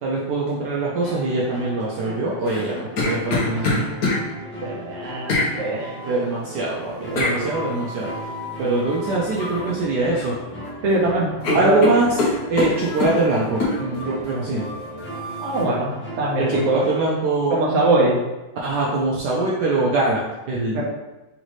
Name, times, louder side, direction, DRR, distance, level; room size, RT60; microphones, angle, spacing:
voice 1, 0.0-2.7 3.0-3.9 6.1-8.1 8.6-10.3 11.5-12.1 12.5-14.7 16.4-17.6 18.6-20.8, right 2 dB, 70° right, -4 dB, 1.1 m, -23 dB
sound 1, 1.0-17.0, right 1 dB, 10° left, 0.8 m, -36 dB
sound 2, 2.4-4.2 5.3-5.5 7.2-7.4 9.4-9.6 10.0-10.7 11.0-11.1 11.4-13.2 13.6-13.8, left 3 dB, 55° left, 1.3 m, -23 dB
voice 2, 4.6-6.0 7.0-7.8 10.8-11.8 15.4-16.9 17.5-18.2 20.7-20.8, right 2 dB, 50° right, -3 dB, 1.0 m, -22 dB
sound 3, 4.8-5.4 5.8-6.3 7.0-10.3 10.6-11.0 11.4-11.7 12.0-12.1 12.3-12.4 12.7-15.7, left 1 dB, 75° left, 1.4 m, -39 dB
4.1 x 3.9 x 3.1 m, 1.1 s
omnidirectional pair, 2.1 m